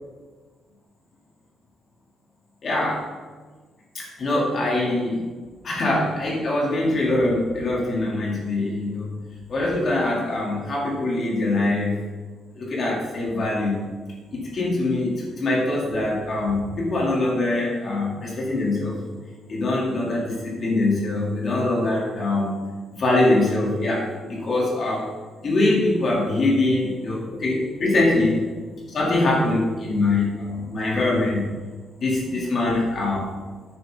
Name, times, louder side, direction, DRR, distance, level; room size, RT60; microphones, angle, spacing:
voice 1, 2.6-3.0 3.9-5.2 5.6-9.1 9.5-11.9 12.5-13.8 14.3-19.0 19.5-22.6 22.9-25.1 25.4-28.4 28.9-31.4 32.0-33.3, left 2 dB, 40° left, -4 dB, 3.6 m, -23 dB
12.0 x 9.5 x 4.1 m, 1.4 s
cardioid pair, 170°, 0 cm